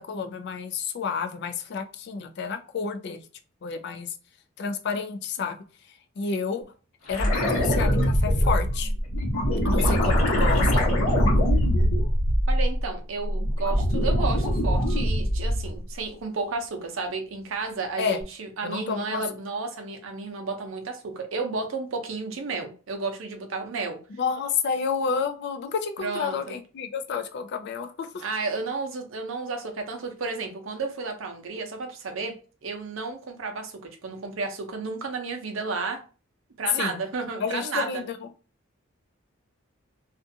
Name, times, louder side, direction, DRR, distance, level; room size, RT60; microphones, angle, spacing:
voice 1, 0.0-3.2 3.6-4.1 4.6-5.6 5.9-6.7 7.1-8.9 9.6-10.9 18.0-18.2 18.6-19.2 24.2-28.2 36.7-37.0 37.4-38.2, left 5 dB, 55° left, 7 dB, 0.4 m, -30 dB
sound 1, 7.1-12.9 13.3-15.8 18.2-18.3, equal, 90° left, 1.0 m, -22 dB
voice 2, 12.5-24.0 26.0-26.4 28.2-32.3 32.6-36.0 36.6-37.9, right 4 dB, 70° right, 4 dB, 0.6 m, -32 dB
2.5 x 2.3 x 2.6 m, 0.36 s
head